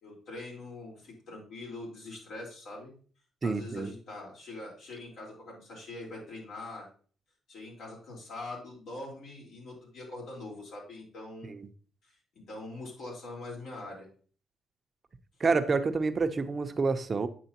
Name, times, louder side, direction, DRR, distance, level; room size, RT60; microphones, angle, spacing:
voice 1, 0.0-2.9 3.4-6.8 7.5-11.5 12.0-14.1, left 2 dB, 75° left, 4.0 m, -43 dB
voice 2, 3.4-3.9 11.5-11.7 15.4-17.3, right 4 dB, 35° right, 0.6 m, -28 dB
9.0 x 6.2 x 2.9 m
cardioid pair, 90°, 0 cm